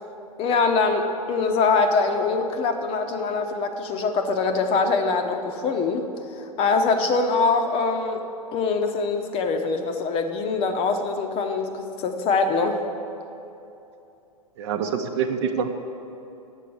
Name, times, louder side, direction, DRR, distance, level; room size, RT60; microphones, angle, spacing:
voice 1, 0.4-6.1 6.4-8.2 8.5-12.8, left 4 dB, 30° left, 6 dB, 0.8 m, -23 dB
voice 2, 14.6-15.7, right 6 dB, 45° right, 7 dB, 0.8 m, -25 dB
8.3 x 7.2 x 8.3 m, 2.8 s
figure-of-eight pair, 100°, 20 cm